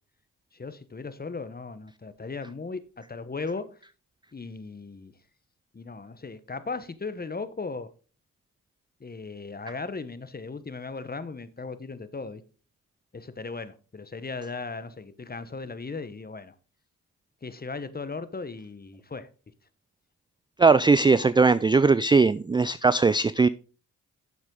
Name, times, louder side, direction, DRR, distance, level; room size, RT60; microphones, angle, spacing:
voice 1, 0.5-3.8 4.3-5.1 5.7-7.9 9.0-12.4 13.1-16.5 17.4-19.3, left 4 dB, 25° left, 1.1 m, -37 dB
voice 2, 20.6-23.5, right 4 dB, 15° right, 0.3 m, -19 dB
8.3 x 7.3 x 3.8 m
supercardioid pair, 50°, 36 cm